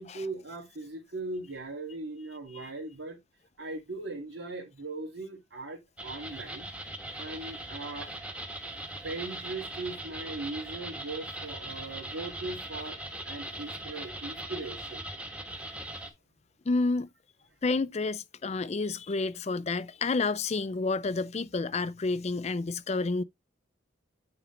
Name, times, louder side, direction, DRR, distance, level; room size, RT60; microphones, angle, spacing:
voice 1, 0.0-3.2 3.6-8.3 9.0-13.0 13.2-15.0, right 2 dB, 75° right, 2.5 m, -39 dB
sound 1, 6.0-16.1, right 1 dB, 5° right, 1.2 m, -40 dB
voice 2, 16.7-17.1 17.6-23.2, left 3 dB, 35° left, 0.4 m, -29 dB
9.4 x 4.0 x 3.8 m
head